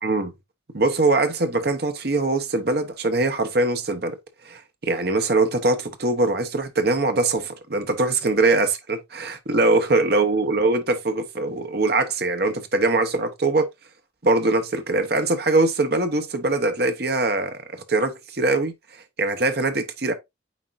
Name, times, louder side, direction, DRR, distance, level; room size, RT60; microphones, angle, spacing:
voice 1, 0.0-0.3 0.7-4.2 4.4-13.7 14.2-18.7 19.2-20.1, right 2 dB, 55° right, 1.0 m, -22 dB
8.3 x 4.4 x 2.6 m
head